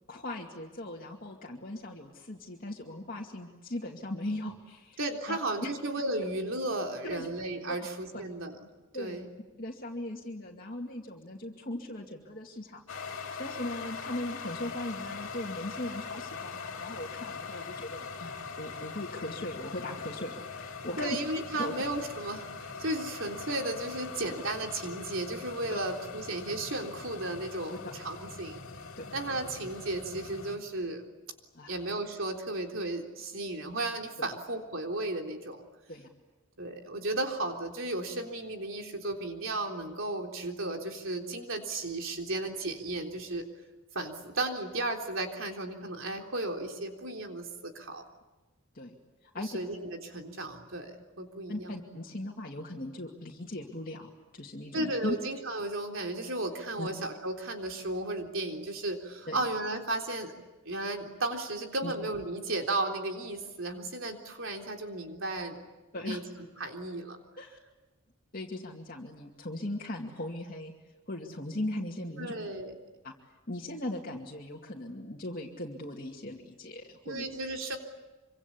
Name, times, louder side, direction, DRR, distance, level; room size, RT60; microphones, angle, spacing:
voice 1, 0.1-5.0 5.3-5.7 7.1-7.3 8.9-9.2 9.6-12.8 13.4-21.2 21.6-21.7 25.7-25.8 27.7-27.8 29.0-29.1 31.5-31.8 34.2-34.3 35.9-36.1 48.7-49.0 49.2-49.6 51.5-55.2 56.8-56.9 59.3-59.4 61.8-61.9 65.9-66.2 67.4-67.6 68.3-70.7 71.1-72.3 73.0-73.1 73.5-77.3, left 1 dB, 40° left, -2 dB, 2.4 m, -38 dB
voice 2, 5.0-8.6 9.0-9.3 21.0-28.6 29.1-31.0 31.7-35.6 36.6-43.5 43.9-48.0 49.4-51.7 54.7-60.3 60.7-65.6 66.1-66.2 66.6-67.2 72.2-72.7 77.1-77.8, right 2 dB, 65° right, 2 dB, 3.7 m, -34 dB
sound 1, 12.9-30.6, left 5 dB, 75° left, 2.7 m, -42 dB
26.0 x 25.5 x 8.6 m, 1.2 s
head